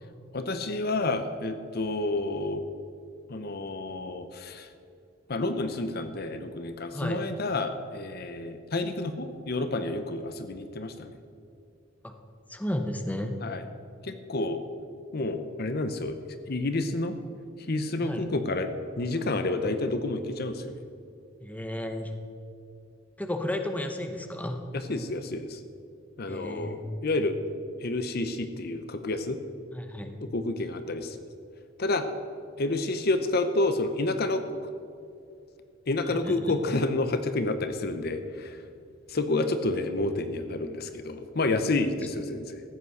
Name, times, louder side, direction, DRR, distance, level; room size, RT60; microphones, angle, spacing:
voice 1, 0.3-2.6 3.3-4.7 5.3-11.1 13.4-13.7 14.0-14.6 15.1-16.2 16.5-17.2 17.7-18.7 19.0-20.8 24.7-25.6 26.2-27.3 27.8-29.4 30.2-31.2 31.8-32.0 32.6-34.5 35.9-38.6 39.1-42.6, left 2 dB, 50° left, 9 dB, 0.8 m, -29 dB
voice 2, 12.5-13.3 18.0-18.2 21.4-22.1 23.2-24.6 26.3-27.0 29.7-30.2 36.1-36.5, left 1 dB, 10° left, 5 dB, 0.8 m, -33 dB
14.0 x 8.3 x 6.5 m, 2.4 s
head